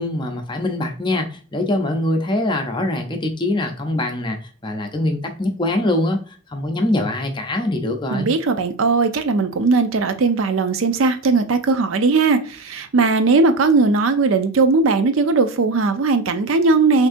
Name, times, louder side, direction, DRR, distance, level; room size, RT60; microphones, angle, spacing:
voice 1, 0.0-8.3, left 1 dB, 20° left, 4 dB, 0.5 m, -23 dB
voice 2, 8.1-17.1, right 3 dB, 80° right, 9 dB, 0.5 m, -18 dB
6.0 x 2.6 x 2.5 m, 0.40 s
head